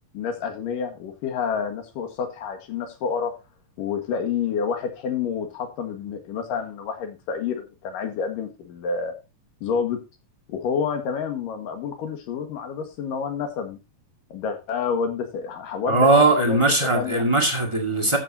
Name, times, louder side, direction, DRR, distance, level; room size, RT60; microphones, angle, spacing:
voice 1, 0.1-3.3 3.8-9.1 9.6-10.0 10.5-13.8 14.3-16.6 16.9-17.2, left 6 dB, 75° left, 3.3 m, -28 dB
voice 2, 15.9-18.2, right 2 dB, 20° right, 0.9 m, -19 dB
14.0 x 7.7 x 2.8 m
omnidirectional pair, 4.0 m